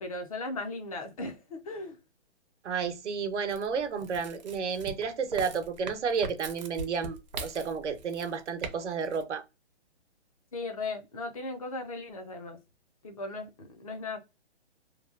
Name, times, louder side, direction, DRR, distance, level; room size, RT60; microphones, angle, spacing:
voice 1, 0.0-2.0 10.5-12.6 13.0-14.2, left 2 dB, 30° left, 0.5 m, -37 dB
voice 2, 2.6-7.2 7.4-9.4, right 5 dB, 80° right, 0.9 m, -31 dB
sound 1, 3.5-8.7 9.0-9.2, right 4 dB, 40° right, 0.6 m, -40 dB
3.0 x 2.2 x 2.3 m
hypercardioid pair, 165°, 34 cm